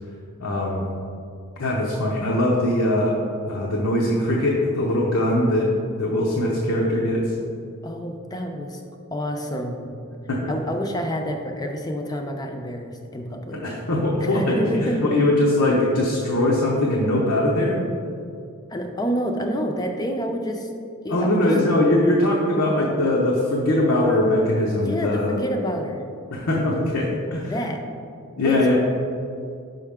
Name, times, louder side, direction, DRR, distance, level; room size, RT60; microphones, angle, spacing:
voice 1, 0.4-0.8 1.6-3.2 3.5-5.7 6.0-7.3 10.3-10.5 13.5-17.8 21.1-25.4 26.3-27.5 28.4-28.8, left 1 dB, 80° left, -3 dB, 0.8 m, -21 dB
voice 2, 7.8-8.8 9.1-9.9 10.5-13.6 14.2-15.0 18.7-20.7 21.0-21.5 24.8-26.0 27.5-27.8 28.4-28.8, equal, 15° left, 3 dB, 0.4 m, -28 dB
5.6 x 5.5 x 3.5 m, 2.5 s
head